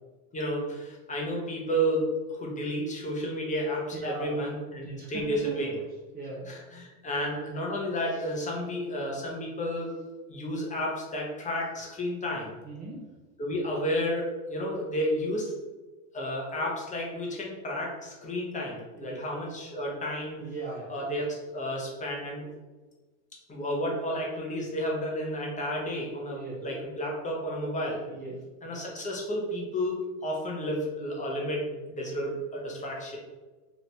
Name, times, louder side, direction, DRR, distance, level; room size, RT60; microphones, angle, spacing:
voice 1, 0.3-5.7 6.5-9.9 10.3-12.5 13.4-15.5 16.1-20.4 20.9-22.5 23.5-28.0 28.6-33.2, equal, 20° left, -2 dB, 0.7 m, -32 dB
voice 2, 3.9-4.4 4.8-5.7 6.1-6.5 12.6-13.0 19.0-19.2 20.4-20.9 26.3-26.6 28.1-28.4, right 3 dB, 20° right, -3 dB, 0.5 m, -38 dB
3.0 x 2.4 x 3.2 m, 1.2 s
hypercardioid pair, 105°, 43 cm